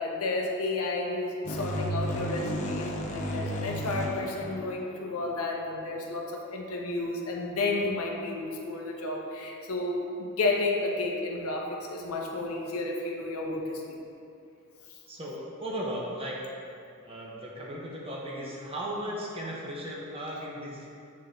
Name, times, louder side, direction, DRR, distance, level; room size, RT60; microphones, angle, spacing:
voice 1, 0.0-14.0, left 2 dB, 80° left, 0 dB, 0.8 m, -32 dB
sound 1, 1.4-5.2, equal, 35° left, 0.6 m, -33 dB
voice 2, 15.1-16.4 17.0-20.9, equal, 25° right, -4 dB, 0.9 m, -36 dB
8.6 x 2.9 x 3.9 m, 2.5 s
head